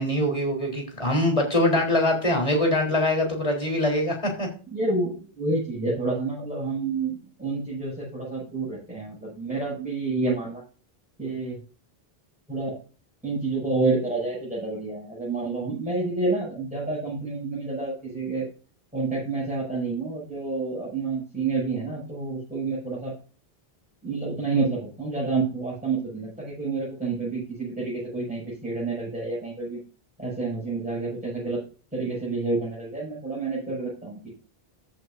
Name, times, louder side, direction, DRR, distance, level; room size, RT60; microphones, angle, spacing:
voice 1, 0.0-4.5, left 1 dB, 35° left, 1 dB, 4.0 m, -23 dB
voice 2, 4.7-10.6 11.2-11.6 12.5-12.8 13.2-18.5 18.9-23.1 24.0-29.8 30.2-31.6 31.9-34.3, right 3 dB, 10° right, -8 dB, 6.4 m, -29 dB
14.0 x 8.5 x 2.6 m, 0.36 s
omnidirectional pair, 1.0 m